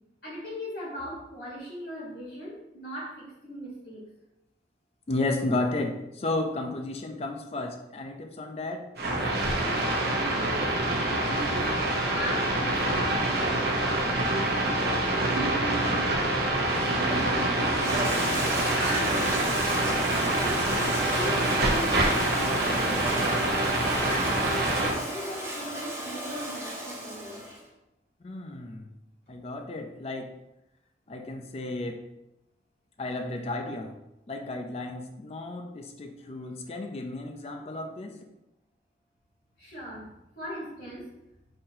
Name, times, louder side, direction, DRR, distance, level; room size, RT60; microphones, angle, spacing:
voice 1, 0.2-4.0 9.5-10.7 11.0-11.7 12.1-14.4 15.2-16.1 16.7-17.4 17.7-18.5 18.8-20.0 20.3-23.4 23.8-27.4 39.6-40.0 40.3-41.1, equal, 70° left, -5 dB, 1.3 m, -38 dB
voice 2, 5.1-8.9 28.2-28.9 29.3-30.3 31.1-32.0 33.0-33.9 34.3-38.2, left 2 dB, 35° left, 4 dB, 0.4 m, -33 dB
sound 1, 9.0-24.9, right 1 dB, 60° right, 0.8 m, -26 dB
Toilet flush, 16.6-27.6, right 1 dB, 15° right, 0.7 m, -34 dB
5.5 x 2.7 x 2.7 m, 0.90 s
head